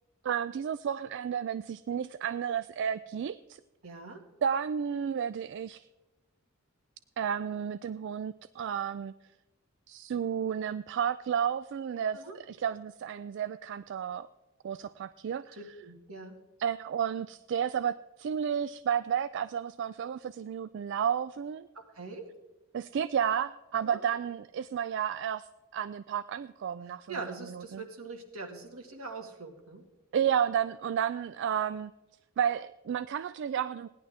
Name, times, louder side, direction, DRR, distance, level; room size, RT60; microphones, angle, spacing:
voice 1, 0.2-3.6 4.4-5.9 7.2-9.1 9.9-14.3 14.6-15.6 16.6-21.7 22.7-25.5 25.7-27.2 27.5-27.8 30.1-31.9 32.4-33.9, right 8 dB, 55° right, 14 dB, 0.3 m, -32 dB
voice 2, 3.8-4.2 12.1-12.4 15.5-16.4 21.7-22.3 23.8-24.0 27.1-29.8, right 3 dB, 75° right, 3 dB, 2.0 m, -42 dB
17.0 x 10.5 x 3.6 m, 1.0 s
head